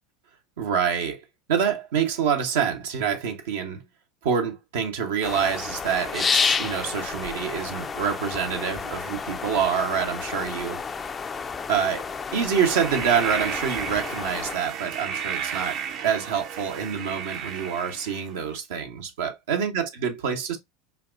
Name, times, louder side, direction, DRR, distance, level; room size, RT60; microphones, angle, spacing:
voice 1, 0.6-1.2 1.5-3.8 4.2-10.8 11.7-12.1 12.3-20.6, right 7 dB, 75° right, 0.9 m, -26 dB
sound 1, 5.2-14.6, left 5 dB, 25° left, 0.4 m, -30 dB
sound 2, 12.6-18.4, right 7 dB, 50° right, 0.7 m, -33 dB
5.6 x 2.4 x 2.5 m
hypercardioid pair, 85°, 0 cm